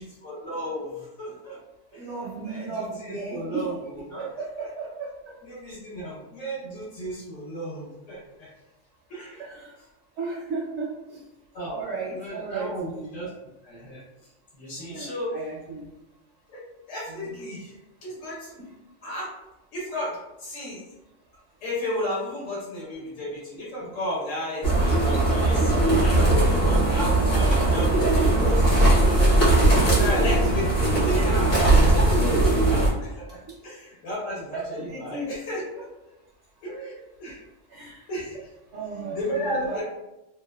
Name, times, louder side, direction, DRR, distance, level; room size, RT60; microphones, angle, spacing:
voice 1, 0.0-1.6 1.9-2.1 2.5-4.3 5.4-8.5 9.1-9.4 11.5-11.9 12.1-13.3 13.6-14.0 14.5-15.3 16.5-18.6 19.0-19.3 19.7-20.8 21.6-35.8 36.6-37.4 38.1-38.5 39.1-39.8, equal, 70° left, -6 dB, 1.1 m, -34 dB
voice 2, 1.9-5.3 9.4-9.7 10.2-11.2 11.6-13.2 14.8-15.8 17.1-17.4 34.5-35.3 37.7-38.0 38.7-39.8, right 3 dB, 65° right, -4 dB, 0.8 m, -35 dB
sound 1, 24.6-32.9, right 2 dB, 50° left, 1.0 m, -19 dB
2.7 x 2.1 x 2.2 m, 0.97 s
omnidirectional pair, 1.4 m